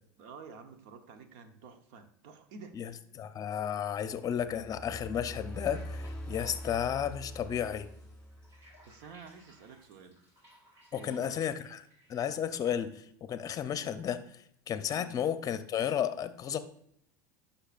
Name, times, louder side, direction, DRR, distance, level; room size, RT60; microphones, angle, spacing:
voice 1, 0.2-2.8 8.8-10.2 10.9-11.4 14.9-15.2, right 5 dB, 70° right, 8 dB, 1.0 m, -50 dB
voice 2, 3.1-7.9 10.9-14.2 14.7-16.6, left 9 dB, 35° left, 11 dB, 0.6 m, -33 dB
sound 1, 4.4-9.0, equal, 10° left, 1.6 m, -43 dB
sound 2, 5.4-12.8, equal, 25° right, 2.8 m, -61 dB
10.0 x 5.7 x 2.5 m, 0.70 s
supercardioid pair, 110°, 11 cm